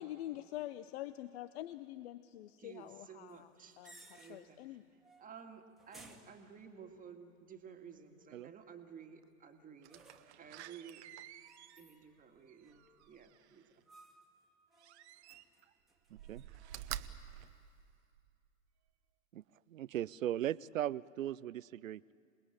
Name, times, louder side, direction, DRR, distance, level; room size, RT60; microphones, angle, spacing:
voice 1, 0.0-3.5 3.8-4.8, left 14 dB, 50° left, 14 dB, 0.7 m, -45 dB
voice 2, 2.6-4.8 5.2-10.1 10.4-11.0 11.8-13.8, right 7 dB, 20° right, 5 dB, 2.0 m, -54 dB
sound 1, 3.3-4.7 5.0-5.4 5.8-7.0 9.9-10.5 11.4-12.3 12.6-13.2 13.9-14.4 14.7-16.8, right 2 dB, ahead, 2.1 m, -61 dB
Slam, 9.8-13.7 14.8-15.7 16.1-18.4 18.9-19.0, right 13 dB, 55° right, 1.0 m, -49 dB
voice 3, 19.7-22.0, right 12 dB, 75° right, 21 dB, 0.6 m, -37 dB
27.5 x 19.5 x 8.9 m, 2.3 s
figure-of-eight pair, 95°, 39 cm